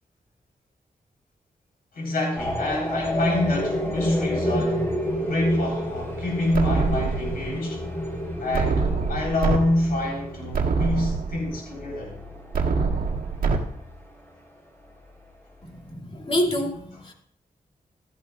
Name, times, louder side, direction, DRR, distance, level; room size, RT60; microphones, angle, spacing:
voice 1, 1.9-7.8 8.4-12.1, left 1 dB, 80° left, 4.0 m, -26 dB
sound 1, 2.4-14.0, equal, 15° left, 4.0 m, -30 dB
sound 2, 6.5-7.6 8.5-9.6 10.0-10.1 10.5-11.6 12.5-13.6, right 4 dB, 75° right, 1.6 m, -24 dB
voice 2, 15.6-17.1, equal, 35° left, 2.4 m, -27 dB
15.0 x 13.0 x 2.4 m
cardioid pair, 80°, 15 cm